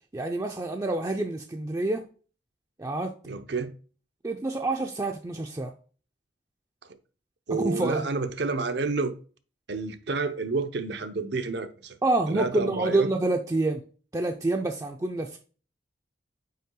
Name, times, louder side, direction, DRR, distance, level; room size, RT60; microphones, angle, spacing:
voice 1, 0.1-2.0 2.8-3.1 4.2-5.7 7.5-8.1 12.0-13.8 14.1-15.4, right 2 dB, 20° right, 0.5 m, -27 dB
voice 2, 3.3-3.7 7.5-9.1 9.7-12.0 12.3-13.1, right 3 dB, 65° right, 0.7 m, -29 dB
5.6 x 4.8 x 3.7 m
head